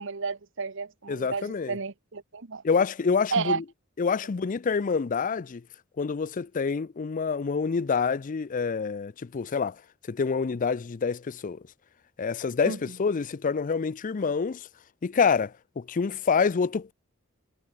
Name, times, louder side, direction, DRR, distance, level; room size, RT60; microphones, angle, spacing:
voice 1, 0.0-2.6 3.3-3.6 12.6-13.0, right 5 dB, 65° right, 1.1 m, -32 dB
voice 2, 1.1-1.8 2.6-3.6 4.0-5.6 6.0-9.8 10.1-11.6 12.2-14.7 15.0-16.9, left 5 dB, 40° left, 0.4 m, -27 dB
head